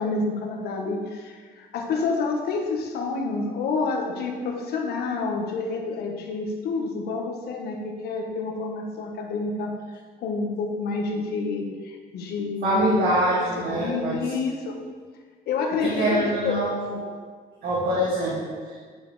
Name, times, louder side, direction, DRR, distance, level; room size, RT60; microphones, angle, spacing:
voice 1, 0.0-13.0 13.3-14.7 15.5-16.7, left 4 dB, 70° left, 2 dB, 1.3 m, -29 dB
voice 2, 12.6-14.2 15.8-17.0 17.6-18.8, right 1 dB, 70° right, -7 dB, 2.1 m, -24 dB
10.0 x 6.2 x 3.2 m, 1.5 s
cardioid pair, 110°, 17 cm